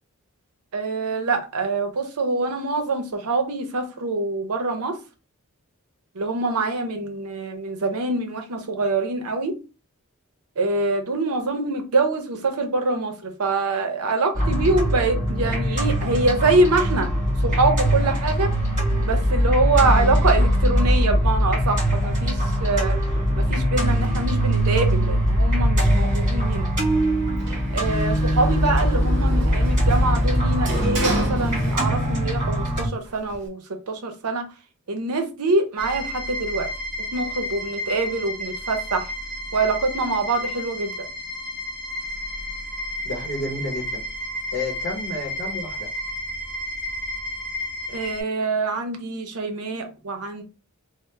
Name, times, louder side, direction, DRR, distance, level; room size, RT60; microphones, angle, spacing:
voice 1, 0.7-5.0 6.1-9.5 10.6-17.1 17.4-18.5 19.0-23.0 23.4-26.7 27.7-33.6 33.9-34.5 34.9-36.7 37.1-39.1 39.5-40.9 47.9-50.4, right 3 dB, 85° right, 0.6 m, -24 dB
sound 1, 14.3-32.9, equal, 35° right, 1.7 m, -21 dB
Sliding door, 27.4-32.2 32.5-33.5, right 1 dB, 50° right, 0.8 m, -31 dB
sound 2, 35.8-48.2, left 1 dB, 5° left, 0.7 m, -32 dB
voice 2, 43.0-44.0 44.5-45.9, left 2 dB, 45° left, 0.8 m, -31 dB
3.2 x 2.1 x 3.1 m
head